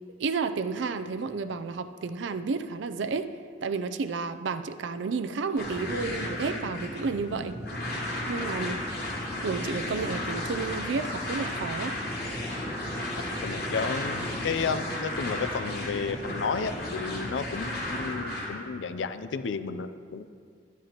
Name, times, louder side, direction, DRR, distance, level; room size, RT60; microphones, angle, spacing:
voice 1, 0.2-3.3 3.6-7.6 8.3-8.8 9.4-12.0, right 4 dB, 80° right, 10 dB, 0.5 m, -31 dB
sound 1, 5.6-18.5, left 1 dB, 60° left, 2.3 m, -33 dB
voice 2, 13.4-20.3, left 5 dB, 85° left, 12 dB, 0.5 m, -32 dB
11.5 x 10.0 x 2.9 m, 2.3 s
head